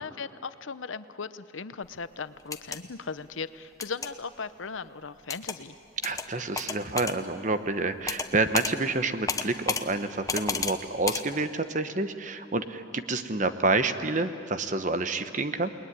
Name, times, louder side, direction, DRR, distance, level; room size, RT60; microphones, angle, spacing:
voice 1, 0.0-5.8, left 5 dB, 80° left, 13 dB, 0.8 m, -38 dB
sound 1, 2.4-2.8 3.8-4.1 5.3-5.6 6.0-6.3 6.6-7.2 8.1-8.3 8.5-8.7 9.3-9.8 10.3-10.8 11.1-11.2, left 5 dB, 15° left, 0.9 m, -30 dB
voice 2, 6.0-15.7, right 3 dB, 40° right, 10 dB, 1.0 m, -28 dB
29.0 x 20.5 x 10.0 m, 2.6 s
head